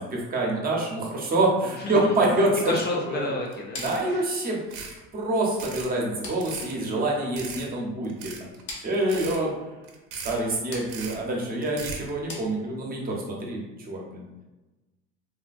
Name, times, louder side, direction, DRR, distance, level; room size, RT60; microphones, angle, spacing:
voice 1, 0.0-2.7 3.1-3.2 3.8-4.6 5.1-8.5 8.8-9.5 10.2-14.2, right 2 dB, 30° right, -2 dB, 0.7 m, -26 dB
voice 2, 2.7-3.8 4.1-4.2, left 2 dB, 35° left, 0 dB, 0.4 m, -30 dB
sound 1, 3.5-3.6 3.8-4.1 4.6-5.0 5.4-5.9 6.3-6.7 7.4-7.7 8.0-8.6 8.9-9.4 9.8-10.4 10.8-11.2 11.6-12.1, right 5 dB, 65° right, 0.6 m, -38 dB
sound 2, 3.7-13.1, left 2 dB, 60° left, 1.0 m, -45 dB
3.3 x 2.1 x 2.4 m, 1.1 s
supercardioid pair, 105°, 31 cm